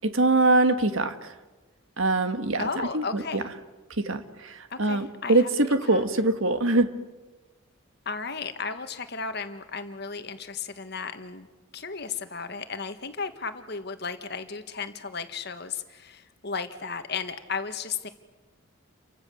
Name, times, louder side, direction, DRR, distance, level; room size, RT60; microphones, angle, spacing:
voice 1, 0.0-1.3 2.0-2.7 2.9-3.4 4.0-6.9, right 2 dB, 70° right, 9 dB, 1.6 m, -23 dB
voice 2, 2.6-3.4 4.7-5.5 5.9-6.0 8.0-11.5 11.7-18.1, left 5 dB, 50° left, 9 dB, 1.6 m, -34 dB
29.5 x 24.0 x 7.1 m, 1.2 s
head